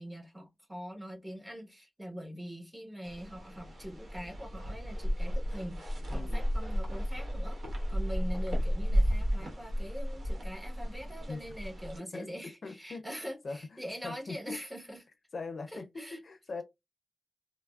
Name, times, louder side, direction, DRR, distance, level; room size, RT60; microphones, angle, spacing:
voice 1, 0.0-15.0 15.7-16.2, equal, 10° right, 0.9 m, -43 dB
sound 1, 3.0-12.0, equal, 60° right, 1.1 m, -33 dB
voice 2, 6.1-6.4 11.3-11.4 12.1-14.6 15.3-16.6, left 3 dB, 60° left, 0.5 m, -42 dB
3.2 x 2.0 x 2.2 m
wide cardioid pair, 100°, 0 cm